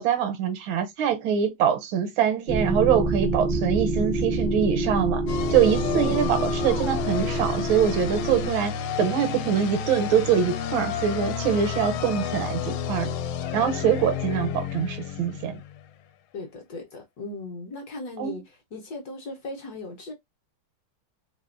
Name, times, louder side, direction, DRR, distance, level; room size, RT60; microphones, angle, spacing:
voice 1, 0.0-5.2 5.5-13.1 13.5-15.6 18.2-18.3, right 8 dB, 80° right, 1.4 m, -24 dB
sound 1, 2.5-8.5, right 2 dB, 45° right, 0.7 m, -27 dB
sound 2, 5.3-15.9, left 8 dB, 80° left, 1.4 m, -31 dB
voice 2, 5.9-6.4 16.3-20.1, left 2 dB, 60° left, 1.1 m, -37 dB
3.3 x 2.7 x 2.5 m
omnidirectional pair, 2.3 m